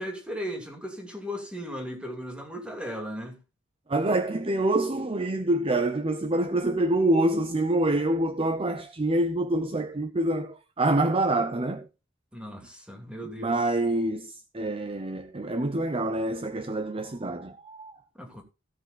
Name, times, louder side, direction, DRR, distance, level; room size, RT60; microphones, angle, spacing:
voice 1, 0.0-3.4 12.3-13.5 18.1-18.4, equal, 5° right, 2.5 m, -36 dB
voice 2, 3.9-11.9 13.2-18.0, right 1 dB, 30° right, 0.7 m, -26 dB
16.0 x 5.7 x 4.0 m
head